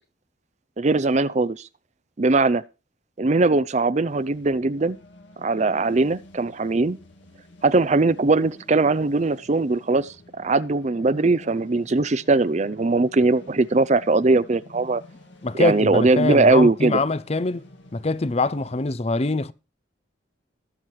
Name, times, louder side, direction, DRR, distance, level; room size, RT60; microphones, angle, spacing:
voice 1, 0.8-1.6 2.2-2.6 3.2-5.0 5.4-7.0 7.6-15.0 15.6-17.0, right 3 dB, 35° right, 0.5 m, -20 dB
sound 1, 4.0-18.9, left 1 dB, 70° left, 2.2 m, -49 dB
voice 2, 15.4-17.6 17.9-19.5, left 2 dB, 30° left, 0.5 m, -24 dB
20.0 x 7.4 x 3.1 m
head